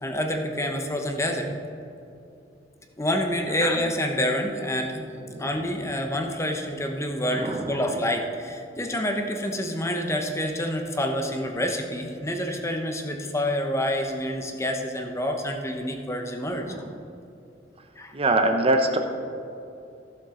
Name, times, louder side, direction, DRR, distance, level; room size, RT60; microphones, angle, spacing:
voice 1, 0.0-1.5 3.0-5.1 5.4-16.8 18.0-18.1, equal, 15° left, 3 dB, 1.0 m, -27 dB
voice 2, 7.3-7.8 16.6-16.9 18.1-19.0, right 2 dB, 30° right, 5 dB, 0.9 m, -24 dB
15.0 x 7.3 x 3.8 m, 2.7 s
head